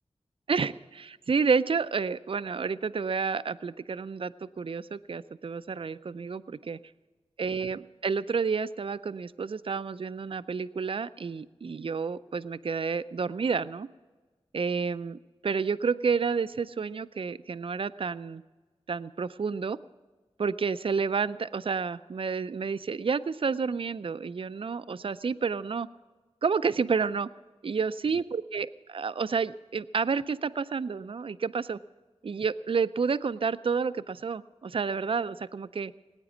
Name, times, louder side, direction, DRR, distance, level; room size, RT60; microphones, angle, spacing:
voice 1, 0.5-6.8 7.4-13.9 14.5-18.4 18.9-19.8 20.4-25.9 26.4-27.3 27.6-31.8 32.2-35.9, right 5 dB, 55° right, 14 dB, 0.4 m, -30 dB
18.5 x 9.1 x 7.2 m, 1.3 s
wide cardioid pair, 50°, 11 cm